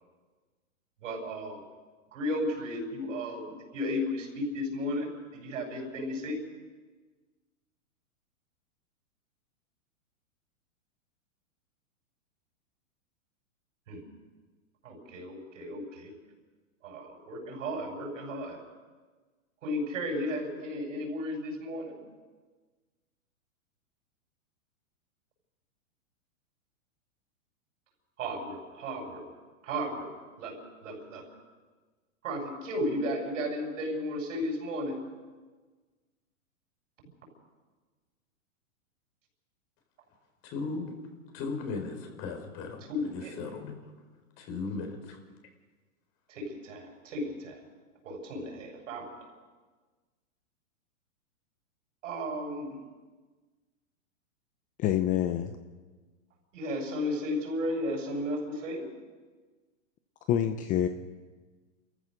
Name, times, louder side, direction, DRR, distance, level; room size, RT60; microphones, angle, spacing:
voice 1, 1.0-1.6 2.1-6.4 13.9-14.0 14.8-16.1 16.8-18.6 19.6-21.9 28.2-29.2 29.6-30.1 30.4-30.5 30.8-31.2 32.2-35.0 42.9-43.4 46.3-47.6 48.0-49.3 52.0-52.9 56.5-58.9, left 1 dB, 65° right, 2 dB, 7.0 m, -34 dB
voice 2, 40.4-41.0 41.3-42.8 43.1-43.8 44.4-45.2, left 4 dB, 35° left, 4 dB, 4.1 m, -36 dB
voice 3, 54.8-55.6 60.3-60.9, left 10 dB, 20° left, 9 dB, 0.6 m, -26 dB
27.5 x 14.5 x 6.5 m, 1.4 s
hypercardioid pair, 140°, 41 cm